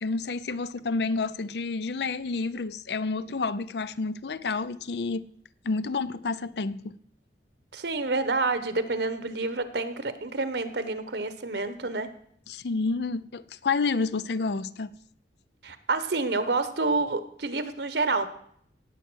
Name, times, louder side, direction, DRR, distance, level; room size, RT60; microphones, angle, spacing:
voice 1, 0.0-5.3 5.6-7.0 12.5-14.9, left 4 dB, 65° left, 0.6 m, -29 dB
voice 2, 7.7-12.1 15.6-18.3, right 3 dB, 70° right, 1.2 m, -28 dB
17.5 x 8.1 x 6.3 m
head